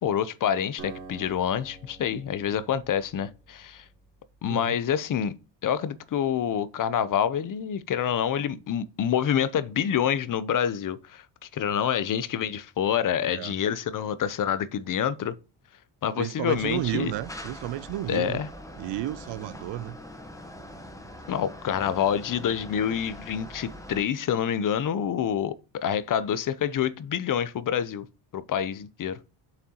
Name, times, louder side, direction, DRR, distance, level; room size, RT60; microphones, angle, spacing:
voice 1, 0.0-3.8 4.4-5.4 5.6-11.2 11.5-15.3 16.0-17.1 18.1-18.5 21.3-28.1 28.3-29.2, left 9 dB, 45° left, 0.7 m, -27 dB
Acoustic guitar, 0.8-4.4, right 4 dB, 40° right, 3.2 m, -47 dB
voice 2, 13.2-13.5 16.2-18.4 18.8-20.0, right 15 dB, 65° right, 0.5 m, -32 dB
sound 1, 16.5-24.0, left 1 dB, 5° left, 1.1 m, -43 dB
7.6 x 6.3 x 2.9 m
cardioid pair, 125°, 47 cm